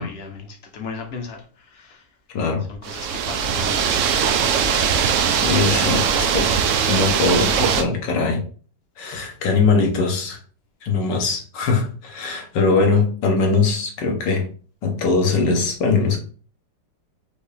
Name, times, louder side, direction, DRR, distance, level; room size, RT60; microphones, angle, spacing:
voice 1, 0.0-2.1 2.7-4.3, left 4 dB, 50° left, 0.8 m, -36 dB
voice 2, 2.3-2.6 5.3-6.5 6.9-8.4 9.0-10.4 10.8-14.5 14.8-16.2, left 4 dB, 75° left, 1.7 m, -21 dB
sound 1, 2.8-7.8, right 7 dB, 90° right, 0.6 m, -20 dB
5.1 x 2.7 x 3.3 m
omnidirectional pair, 1.9 m